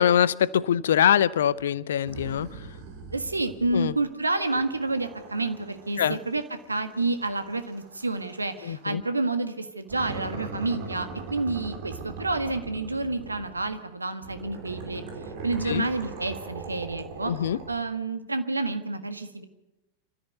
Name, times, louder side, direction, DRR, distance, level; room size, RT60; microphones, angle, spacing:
voice 1, 0.0-2.5 3.7-3.9 6.0-6.2 8.6-9.0 15.7-15.9 17.3-17.6, left 9 dB, 60° left, 21 dB, 0.7 m, -23 dB
sound 1, 2.1-4.0 4.4-8.9 9.9-13.8 14.2-18.0, right 4 dB, 50° right, 4.2 m, -41 dB
voice 2, 3.1-6.4 6.7-15.1 15.4-17.3 17.7-19.4, right 2 dB, 80° right, 9 dB, 1.7 m, -29 dB
27.5 x 13.5 x 7.9 m, 1.0 s
figure-of-eight pair, 90°, 0 cm